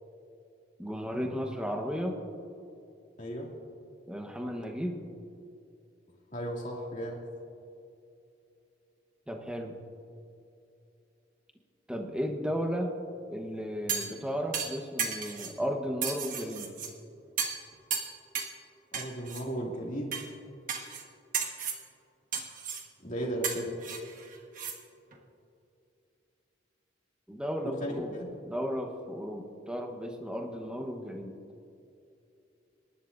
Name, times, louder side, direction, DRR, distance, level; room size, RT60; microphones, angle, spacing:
voice 1, 0.8-2.2 4.1-5.0 9.3-9.8 11.9-12.9 13.3-16.7 27.3-28.1 28.4-31.3, equal, 5° right, 3 dB, 1.1 m, -34 dB
voice 2, 3.2-3.5 6.3-7.2 18.9-20.2 23.0-23.8 27.6-28.3, right 1 dB, 40° left, -1 dB, 2.4 m, -35 dB
sound 1, 13.9-14.2 14.5-15.5 16.0-16.9 17.4-17.6 17.9-18.6 18.9-19.4 20.1-20.3 20.7-21.0 21.3-21.8 22.3-22.9 23.4-24.8 25.1-25.2, right 6 dB, 45° right, 1.4 m, -34 dB
27.0 x 11.5 x 2.6 m, 2.6 s
head